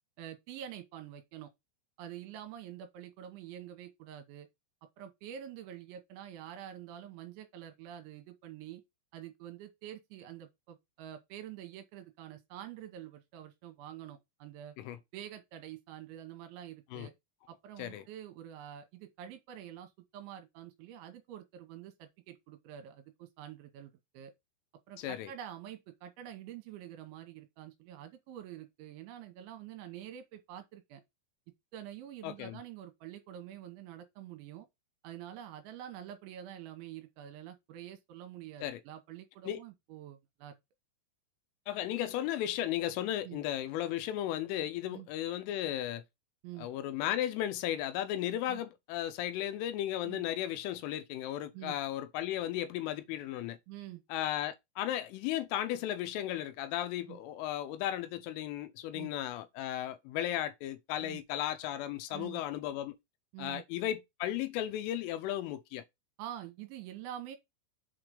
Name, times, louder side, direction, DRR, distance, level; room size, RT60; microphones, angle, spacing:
voice 1, 0.2-1.5 2.0-4.5 5.0-8.8 9.1-14.7 15.1-17.1 17.5-24.3 24.9-31.0 31.7-34.7 35.0-40.6 43.2-43.4 44.9-45.1 46.4-46.7 48.5-48.6 50.1-50.2 51.5-51.8 53.7-54.0 57.1-57.2 58.9-59.1 61.0-61.2 62.1-62.4 63.3-63.6 66.2-67.4, right 11 dB, 80° right, 3.0 m, -47 dB
voice 2, 25.0-25.3 32.2-32.6 38.6-38.8 39.5-39.6 41.7-46.0 46.6-53.6 54.1-62.9 63.4-65.8, left 12 dB, 80° left, 3.1 m, -35 dB
7.7 x 3.8 x 4.9 m
omnidirectional pair, 5.8 m